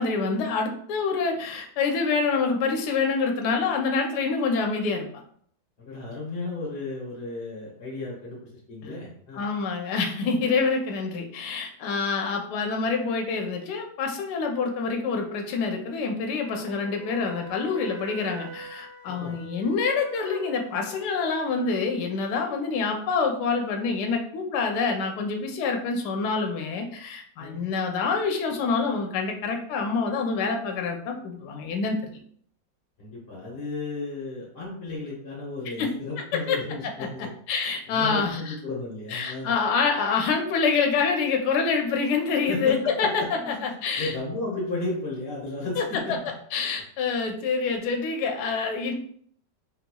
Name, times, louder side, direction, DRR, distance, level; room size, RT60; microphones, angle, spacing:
voice 1, 0.0-5.1 8.8-9.0 9.3-32.0 35.8-35.9 36.5-36.6 37.0-38.5 39.1-44.1 45.8-46.2 46.5-48.9, left 4 dB, 70° left, 3 dB, 1.1 m, -26 dB
voice 2, 5.8-8.4 8.7-9.5 19.1-19.4 27.4-27.6 33.0-37.3 37.9-39.5 42.5-46.1, left 2 dB, 45° left, -5 dB, 0.9 m, -34 dB
Wind instrument woodwind instrument, 16.4-21.1, right 7 dB, 70° right, 1.0 m, -43 dB
4.0 x 2.9 x 2.2 m, 0.62 s
omnidirectional pair, 2.0 m